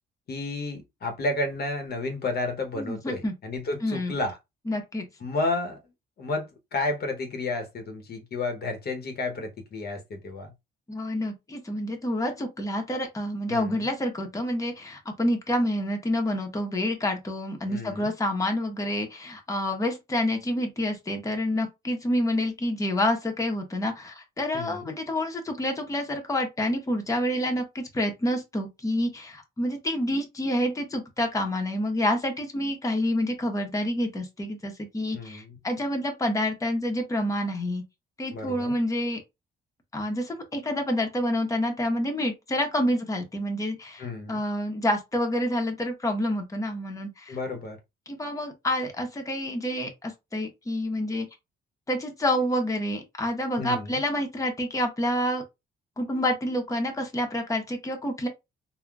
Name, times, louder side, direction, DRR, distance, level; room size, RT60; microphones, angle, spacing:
voice 1, 0.3-4.4 5.2-5.8 6.2-10.5 13.5-13.9 17.7-18.1 24.5-24.9 35.1-35.6 38.3-38.7 44.0-44.4 47.3-47.8 53.6-54.0, left 2 dB, 50° left, 0.9 m, -31 dB
voice 2, 2.7-3.3 3.8-4.1 4.7-5.1 10.9-37.8 38.2-39.2 39.9-47.4 48.1-51.3 51.9-55.4 56.0-58.3, left 1 dB, 15° left, 0.8 m, -28 dB
3.7 x 2.1 x 2.3 m
cardioid pair, 90°, 20 cm